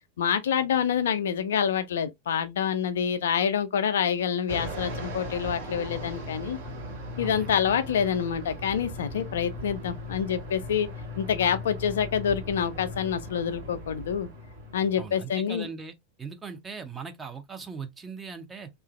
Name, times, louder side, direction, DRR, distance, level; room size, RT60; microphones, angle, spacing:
voice 1, 0.2-6.6 7.2-10.9 11.2-14.3 14.7-15.7, left 8 dB, 60° left, 0.4 m, -27 dB
Fixed-wing aircraft airplane, 4.5-15.3, left 1 dB, 60° right, 1.1 m, -38 dB
voice 2, 7.2-7.5 15.0-18.7, right 5 dB, 15° right, 0.5 m, -39 dB
3.0 x 2.4 x 2.3 m
figure-of-eight pair, 90°, 0 cm